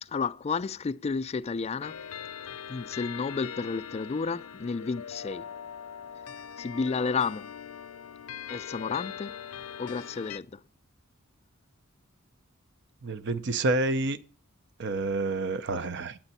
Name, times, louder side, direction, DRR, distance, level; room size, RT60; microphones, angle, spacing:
voice 1, 0.0-2.0 2.7-5.5 6.6-7.5 8.5-9.4 9.8-10.6, left 5 dB, 30° left, 0.3 m, -31 dB
sound 1, 1.8-10.4, left 8 dB, 85° left, 0.5 m, -41 dB
voice 2, 13.0-14.2 14.8-16.2, right 2 dB, 55° right, 0.7 m, -28 dB
9.0 x 8.8 x 4.2 m
head